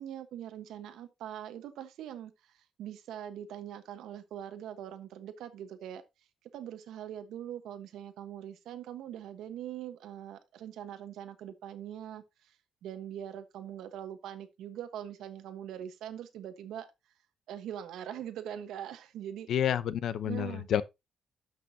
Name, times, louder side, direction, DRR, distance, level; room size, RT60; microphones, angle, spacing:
voice 1, 0.0-6.0 6.5-12.6 12.8-16.9 17.5-19.5 20.2-20.7, right 10 dB, 90° right, 1.2 m, -42 dB
voice 2, 19.5-20.8, left 10 dB, 65° left, 0.7 m, -29 dB
12.0 x 6.2 x 2.8 m
cardioid pair, 150°, 0 cm